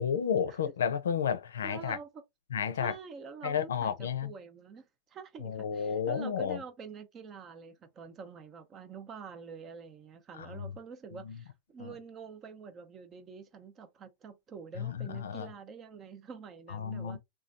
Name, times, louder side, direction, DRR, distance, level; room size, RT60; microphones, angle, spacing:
voice 1, 0.0-2.0 2.5-2.9 3.4-4.3 5.4-6.6 10.3-10.7 11.1-11.4 11.8-11.9 14.8-15.5 16.7-17.2, left 7 dB, 90° left, 0.5 m, -32 dB
voice 2, 1.6-2.1 2.8-17.2, right 5 dB, 30° right, 0.6 m, -47 dB
3.1 x 2.3 x 2.5 m
hypercardioid pair, 120°, 0 cm